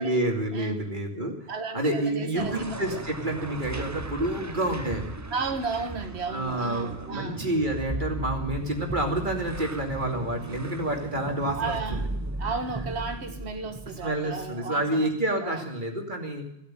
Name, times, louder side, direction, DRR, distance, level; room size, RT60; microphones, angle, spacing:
voice 1, 0.0-1.4 1.7-5.1 6.3-12.1 14.0-16.5, right 1 dB, 50° right, 2 dB, 2.9 m, -28 dB
voice 2, 1.5-3.0 5.3-7.4 11.5-12.1 12.4-15.1 15.4-15.6, right 4 dB, 80° right, 6 dB, 1.6 m, -33 dB
sound 1, 2.4-14.8, right 2 dB, 20° right, 0.6 m, -37 dB
16.0 x 8.5 x 9.0 m, 0.81 s
omnidirectional pair, 1.1 m